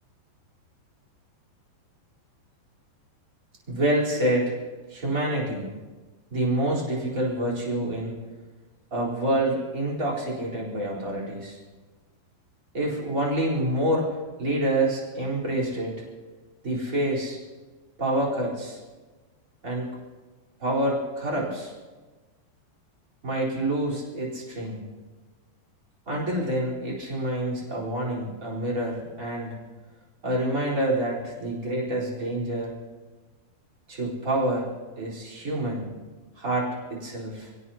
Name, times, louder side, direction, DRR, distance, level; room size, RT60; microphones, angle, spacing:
voice 1, 3.7-4.6 4.9-5.7 6.3-8.2 8.9-11.6 12.7-16.0 16.6-17.4 18.0-18.8 19.6-19.9 20.6-21.7 23.2-24.8 26.1-29.6 30.2-32.7 33.9-34.7 35.0-35.9 36.4-37.5, right 1 dB, 20° right, -5 dB, 4.0 m, -27 dB
28.5 x 17.5 x 2.9 m, 1.3 s
omnidirectional pair, 5.0 m